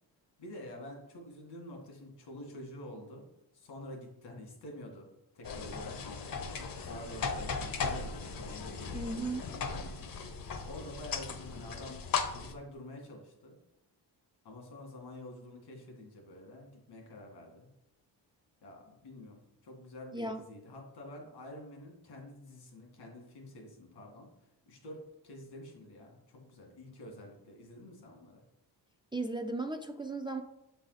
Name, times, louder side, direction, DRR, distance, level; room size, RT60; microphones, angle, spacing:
voice 1, 0.4-3.3 3.5-5.1 5.3-6.2 6.8-10.1 10.4-12.0 12.4-13.6 14.4-17.7 18.6-24.3 24.7-28.4, left 1 dB, 80° left, 1 dB, 2.0 m, -48 dB
sound 1, 5.4-12.5, left 5 dB, 55° left, 0.8 m, -37 dB
voice 2, 8.9-9.4 20.1-20.4 29.1-30.4, right 2 dB, 15° right, 5 dB, 0.3 m, -36 dB
7.1 x 4.1 x 4.0 m, 0.84 s
cardioid pair, 115°, 40 cm